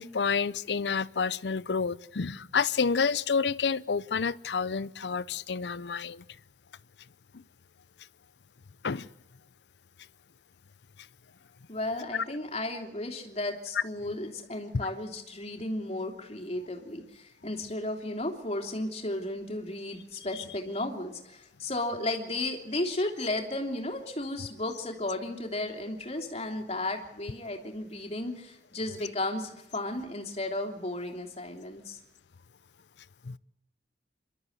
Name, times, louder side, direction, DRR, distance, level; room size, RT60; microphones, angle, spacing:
voice 1, 0.0-6.2 7.3-7.4 8.8-9.1 12.1-12.2 14.8-14.9 33.2-33.4, left 5 dB, 75° left, 0.6 m, -29 dB
voice 2, 11.7-32.0, left 2 dB, 35° left, 3.1 m, -34 dB
28.0 x 13.0 x 8.0 m
head